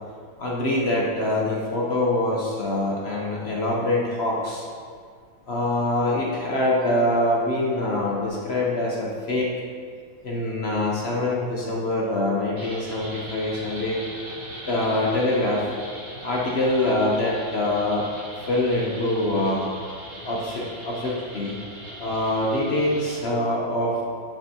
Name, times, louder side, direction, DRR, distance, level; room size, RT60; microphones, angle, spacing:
voice 1, 0.4-4.6 5.5-9.5 10.2-14.0 14.7-15.7 16.2-18.1 18.5-19.7 20.2-21.6 22.0-24.0, left 1 dB, 50° left, -3 dB, 0.7 m, -24 dB
sound 1, 12.6-23.2, equal, 60° right, 2.5 m, -40 dB
10.5 x 5.4 x 2.8 m, 2.1 s
omnidirectional pair, 2.1 m